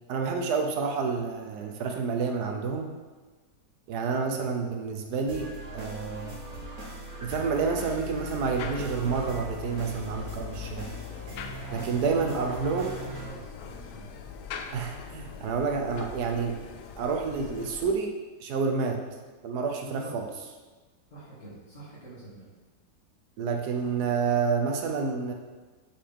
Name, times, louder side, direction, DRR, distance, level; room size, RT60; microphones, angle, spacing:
voice 1, 0.1-2.9 3.9-6.4 7.2-10.9 11.7-13.0 14.7-16.6 17.0-18.1 18.4-19.0 19.4-20.3 23.4-25.3, right 5 dB, 75° right, 3 dB, 1.2 m, -29 dB
sound 1, 5.3-13.3, left 1 dB, 50° right, 1.6 m, -40 dB
sound 2, 8.6-17.9, left 5 dB, 80° left, 1.1 m, -42 dB
voice 2, 12.2-12.5 12.9-14.1 19.8-20.1 21.1-22.5 23.8-23.9, right 2 dB, 45° left, -9 dB, 2.5 m, -46 dB
7.5 x 4.2 x 3.5 m, 1.3 s
omnidirectional pair, 1.8 m